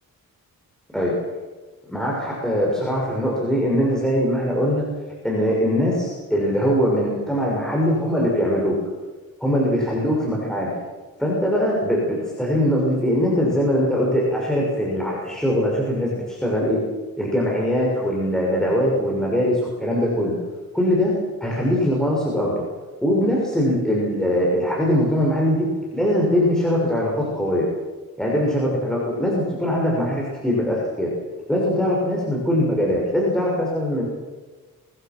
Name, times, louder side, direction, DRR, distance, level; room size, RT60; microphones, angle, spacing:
voice 1, 1.9-4.8 5.2-8.8 9.4-10.7 11.2-16.9 17.2-20.3 20.7-22.6 23.0-25.7 25.9-27.7 28.2-31.1 31.5-34.0, equal, ahead, -4 dB, 6.3 m, -21 dB
24.5 x 22.0 x 6.2 m, 1.3 s
cardioid pair, 125°, 34 cm